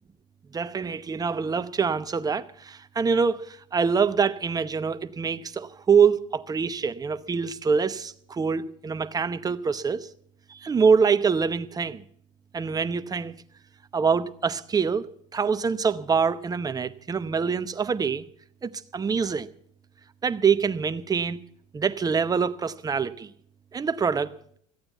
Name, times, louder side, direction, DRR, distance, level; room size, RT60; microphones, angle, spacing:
voice 1, 0.5-10.1 10.5-12.0 12.5-13.3 13.9-15.0 15.3-18.2 18.6-19.5 20.2-21.4 21.7-23.3 23.7-24.3, right 6 dB, 20° right, 0.8 m, -25 dB
14.0 x 8.7 x 8.2 m
supercardioid pair, 95°, 17 cm